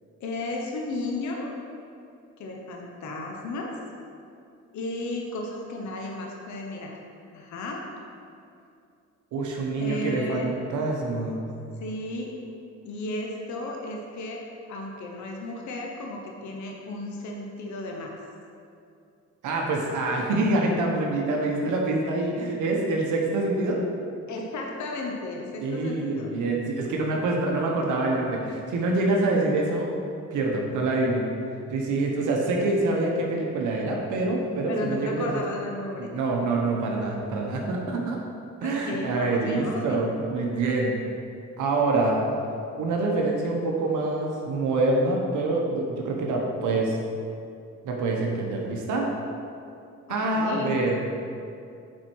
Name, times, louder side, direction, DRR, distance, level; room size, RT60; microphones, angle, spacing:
voice 1, 0.2-1.5 2.4-3.8 4.7-7.0 7.3-7.8 9.8-10.5 11.8-12.3 12.8-14.4 14.7-18.1 24.3-26.3 34.7-36.1 38.6-40.0 50.1-50.7, left 2 dB, 70° left, 0 dB, 1.0 m, -34 dB
voice 2, 9.3-11.4 19.4-23.8 25.6-29.9 30.3-31.2 31.7-35.3 36.0-38.2 38.6-40.9 41.6-42.5 42.8-47.0 47.8-49.1 50.1-51.0, right 2 dB, 80° right, -1 dB, 1.0 m, -26 dB
7.3 x 4.4 x 4.6 m, 2.5 s
cardioid pair, 90°, 30 cm